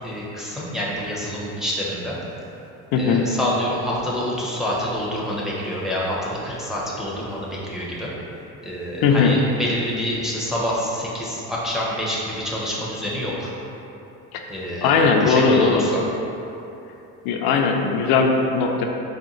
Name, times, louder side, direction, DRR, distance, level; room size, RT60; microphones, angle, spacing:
voice 1, 0.0-2.2 2.9-8.1 8.6-13.5 14.5-16.0, equal, ahead, -6 dB, 0.6 m, -27 dB
voice 2, 2.9-3.2 9.0-9.3 14.3-14.4 14.8-15.8 17.2-18.9, left 5 dB, 70° left, 2 dB, 0.5 m, -18 dB
4.2 x 2.2 x 3.8 m, 2.9 s
supercardioid pair, 110°, 38 cm